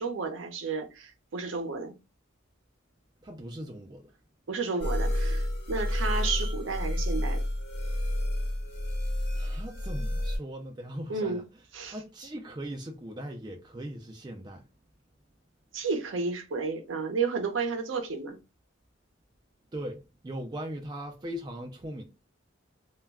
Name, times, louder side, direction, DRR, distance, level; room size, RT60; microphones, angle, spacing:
voice 1, 0.0-1.9 4.5-7.4 11.1-11.4 11.7-11.9 15.7-18.4, right 4 dB, 70° right, 0.6 m, -32 dB
voice 2, 3.2-4.1 9.4-11.4 11.8-14.6 19.7-22.0, right 1 dB, 20° right, 0.3 m, -39 dB
sound 1, 4.8-10.4, left 1 dB, 50° left, 1.0 m, -29 dB
2.2 x 2.1 x 3.3 m
head